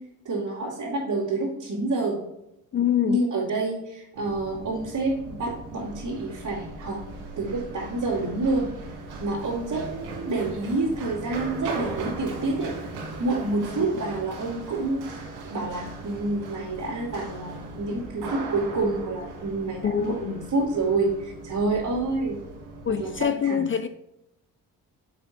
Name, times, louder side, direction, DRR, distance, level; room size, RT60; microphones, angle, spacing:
voice 1, 0.2-2.2 3.1-7.0 7.4-8.7 9.2-12.7 13.2-15.1 15.5-22.4 23.0-23.6, right 2 dB, 45° right, 2.7 m, -28 dB
voice 2, 2.7-3.2 13.7-13.9 19.8-20.4 22.9-23.9, left 8 dB, 30° left, 0.5 m, -25 dB
Run, 4.1-23.2, right 3 dB, 75° right, 2.2 m, -38 dB
6.7 x 5.8 x 4.1 m
supercardioid pair, 60°, 38 cm